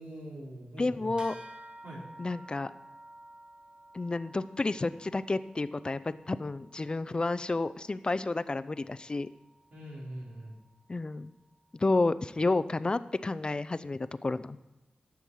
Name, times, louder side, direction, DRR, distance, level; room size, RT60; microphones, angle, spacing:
voice 1, 0.0-1.1 1.8-2.0 9.7-10.5, right 1 dB, 80° right, -4 dB, 3.9 m, -43 dB
voice 2, 0.8-1.3 2.2-2.7 3.9-9.3 10.9-11.3 11.7-14.6, left 3 dB, 35° left, 14 dB, 0.4 m, -30 dB
sound 1, 1.2-11.0, right 1 dB, 30° right, 1.2 m, -54 dB
14.0 x 7.1 x 4.7 m, 1.1 s
wide cardioid pair, 85°, 3 cm